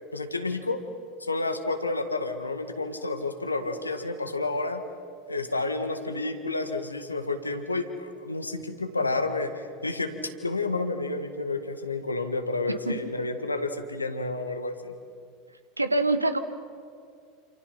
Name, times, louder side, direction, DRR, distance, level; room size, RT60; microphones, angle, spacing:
voice 1, 0.1-0.8 1.2-4.8 5.3-9.5 9.8-10.1 10.4-14.9, left 3 dB, 85° left, 7 dB, 1.8 m, -30 dB
voice 2, 15.8-16.4, right 2 dB, 90° right, 11 dB, 1.3 m, -24 dB
28.0 x 27.5 x 5.8 m, 2.3 s
figure-of-eight pair, 80°, 0 cm